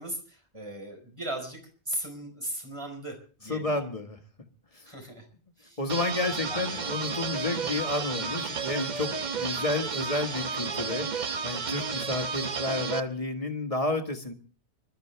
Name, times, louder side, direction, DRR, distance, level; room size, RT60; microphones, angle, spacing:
voice 1, 0.0-3.2 3.4-3.7 4.9-5.3 5.6-5.8 6.5-7.0 9.4-9.7, right 1 dB, 30° right, 3 dB, 4.4 m, -38 dB
voice 2, 3.5-4.2 4.7-4.9 5.8-11.1 11.4-14.3, left 2 dB, 35° left, 5 dB, 1.7 m, -31 dB
sound 1, 5.9-13.0, right 5 dB, 45° right, 0.9 m, -32 dB
25.5 x 12.5 x 3.3 m, 0.38 s
omnidirectional pair, 1.1 m